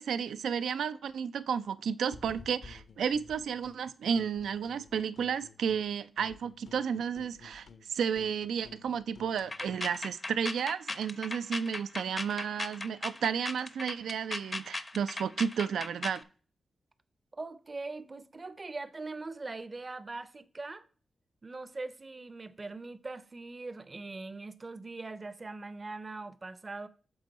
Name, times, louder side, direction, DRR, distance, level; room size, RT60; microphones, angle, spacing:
voice 1, 0.0-16.2, right 7 dB, 90° right, 0.4 m, -32 dB
sound 1, 2.1-3.8 4.1-5.9 6.2-9.9, left 4 dB, 65° left, 0.8 m, -53 dB
sound 2, 9.4-16.2, left 2 dB, 30° left, 0.6 m, -38 dB
voice 2, 17.3-20.9 21.4-26.9, right 3 dB, 35° right, 0.6 m, -41 dB
7.9 x 3.7 x 4.0 m
cardioid pair, 75°, 0 cm